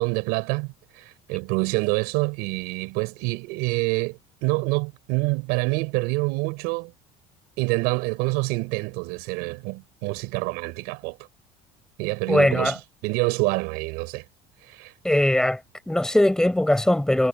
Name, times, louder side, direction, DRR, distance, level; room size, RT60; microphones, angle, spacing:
voice 1, 0.0-6.9 7.6-11.2 12.0-12.8 13.0-14.2 14.7-14.9, right 27 dB, 80° right, 6.8 m, -26 dB
voice 2, 12.3-12.8 15.0-15.6 15.9-17.3, left 1 dB, 5° left, 6.0 m, -20 dB
cardioid pair, 160°, 16 cm